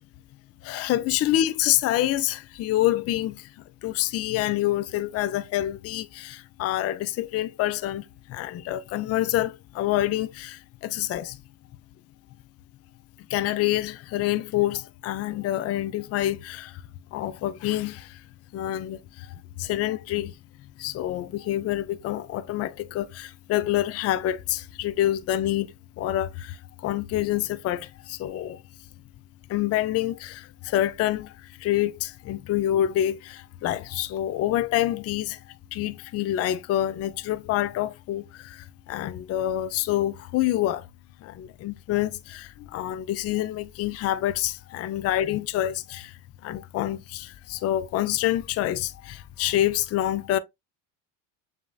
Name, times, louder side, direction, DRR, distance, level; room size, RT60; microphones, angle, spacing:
voice 1, 0.6-3.5 3.8-11.4 13.3-16.8 17.1-18.2 18.5-20.3 20.8-25.7 26.0-28.6 29.5-35.4 35.7-40.8 41.2-46.2 46.4-50.4, left 13 dB, 35° left, 0.4 m, -27 dB
6.9 x 2.8 x 2.3 m
hypercardioid pair, 85°, 50 cm